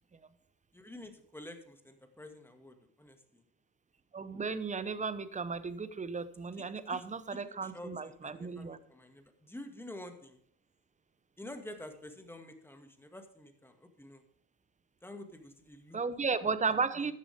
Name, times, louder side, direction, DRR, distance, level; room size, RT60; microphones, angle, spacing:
voice 1, 0.7-3.4 6.9-7.0 7.3-10.4 11.4-14.2 15.0-16.0 17.0-17.1, left 1 dB, 5° left, 6 dB, 2.0 m, -49 dB
voice 2, 4.1-8.8 15.9-17.1, right 5 dB, 15° right, 14 dB, 0.9 m, -34 dB
13.5 x 10.5 x 3.6 m, 0.65 s
hypercardioid pair, 70°, 46 cm